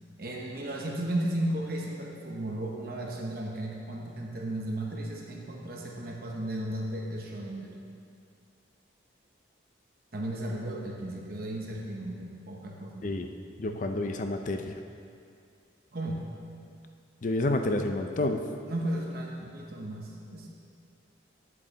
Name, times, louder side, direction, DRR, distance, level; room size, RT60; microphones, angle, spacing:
voice 1, 0.2-7.8 10.1-13.1 13.6-13.8 15.9-16.2 18.6-20.5, right 1 dB, 50° right, -1 dB, 0.9 m, -35 dB
voice 2, 13.6-14.7 17.2-18.4, left 2 dB, 40° left, 5 dB, 0.4 m, -29 dB
9.6 x 7.6 x 4.0 m, 2.3 s
head